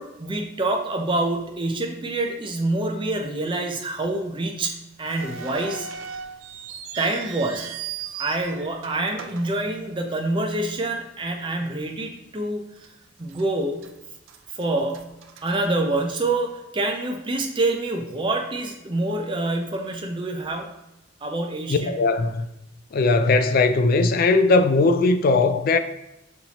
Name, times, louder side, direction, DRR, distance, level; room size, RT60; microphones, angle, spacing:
voice 1, 0.0-5.9 7.0-7.7 8.2-12.6 13.2-13.9 14.6-15.1 15.4-20.7 21.2-21.9, right 2 dB, 25° right, 0.5 m, -26 dB
sound 1, 5.0-10.3 10.6-10.7 11.5-11.7 12.1-12.2 12.8-13.4 13.8-16.2, right 7 dB, 85° right, 0.4 m, -38 dB
voice 2, 21.7-22.5 22.9-25.8, left 3 dB, 50° left, 0.3 m, -19 dB
5.6 x 2.6 x 2.9 m
head